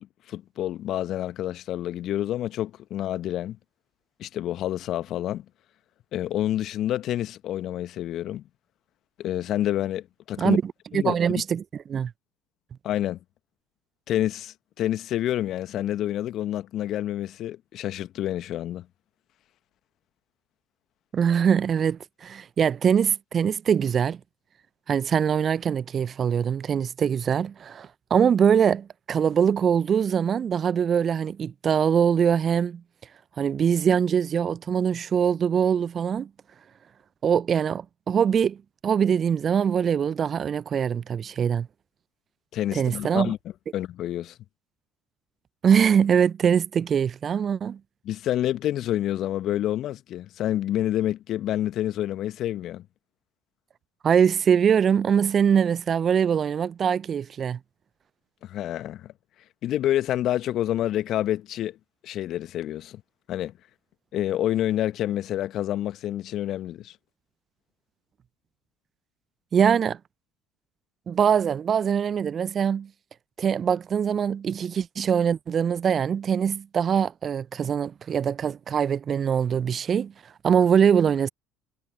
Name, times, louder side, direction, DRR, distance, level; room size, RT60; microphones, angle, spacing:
voice 1, 0.0-3.6 4.2-5.4 6.1-8.4 9.2-10.6 10.9-11.4 12.8-13.2 14.1-18.9 42.5-43.4 43.7-44.4 48.0-52.9 58.4-59.1 59.6-61.8 62.0-63.0 63.3-63.5 64.1-67.0, left 12 dB, 55° left, 1.4 m, -28 dB
voice 2, 10.4-11.6 11.9-12.1 21.1-24.2 24.9-32.8 33.4-36.3 37.2-38.6 38.8-41.7 42.7-43.3 45.6-47.8 54.0-57.6 69.5-70.0 71.1-72.9 73.4-80.1 80.4-81.3, right 7 dB, 40° right, 0.8 m, -23 dB
figure-of-eight pair, 60°, 0 cm